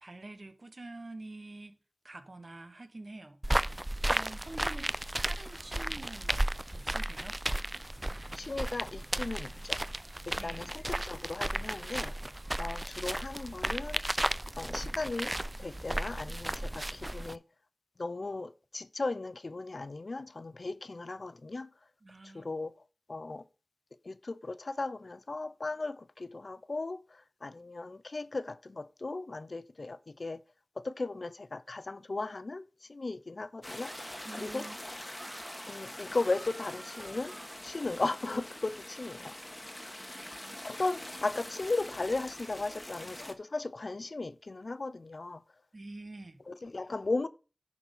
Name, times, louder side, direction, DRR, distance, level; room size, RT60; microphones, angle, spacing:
voice 1, 0.0-1.8 2.0-3.7 4.1-4.9 5.2-6.3 6.7-7.4 10.4-10.7 22.0-22.5 34.2-34.8 39.2-39.3 40.0-40.6 45.7-46.4, right 2 dB, 55° right, 1.3 m, -47 dB
sound 1, 3.4-17.4, right 1 dB, 25° right, 0.4 m, -34 dB
voice 2, 8.4-9.8 10.3-12.2 12.6-14.0 14.6-17.4 18.0-21.7 22.2-22.8 23.1-23.4 24.0-30.4 30.8-33.9 34.3-34.7 35.7-37.3 37.6-39.4 40.6-45.4 46.5-47.3, left 3 dB, 65° left, 0.5 m, -36 dB
sound 2, 33.6-43.3, left 1 dB, 20° left, 1.4 m, -44 dB
Screaming, 33.8-37.7, right 2 dB, 80° right, 1.7 m, -53 dB
10.5 x 4.3 x 5.4 m
wide cardioid pair, 45°, 0 cm